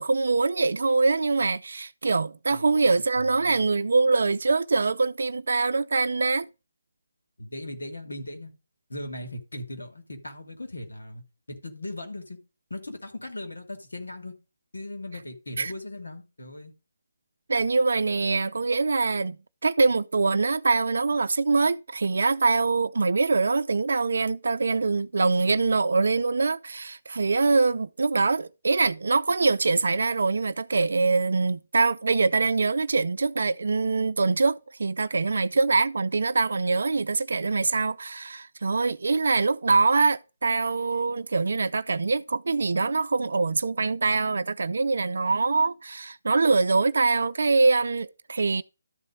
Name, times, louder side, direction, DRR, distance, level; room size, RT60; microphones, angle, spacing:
voice 1, 0.0-6.5 15.6-15.7 17.5-19.4 19.6-48.6, right 3 dB, 70° right, 0.5 m, -24 dB
voice 2, 7.4-8.5 8.9-11.2 11.5-12.4 12.7-14.3 14.7-16.7, left 1 dB, 80° left, 2.8 m, -38 dB
12.5 x 4.3 x 5.1 m
figure-of-eight pair, 150°, 0 cm